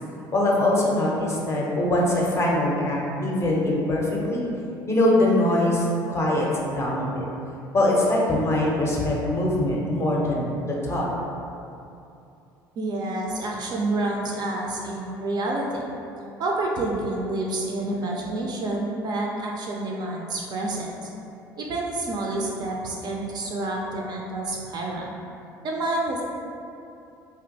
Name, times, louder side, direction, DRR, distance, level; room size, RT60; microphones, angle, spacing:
voice 1, 0.3-4.5 4.9-7.3 7.7-11.1, left 1 dB, 25° left, -4 dB, 0.5 m, -23 dB
voice 2, 12.8-15.9 16.4-21.1 21.6-25.2 25.6-26.2, right 2 dB, 35° right, -2 dB, 0.3 m, -28 dB
2.8 x 2.4 x 2.5 m, 2.7 s
figure-of-eight pair, 60°, 11 cm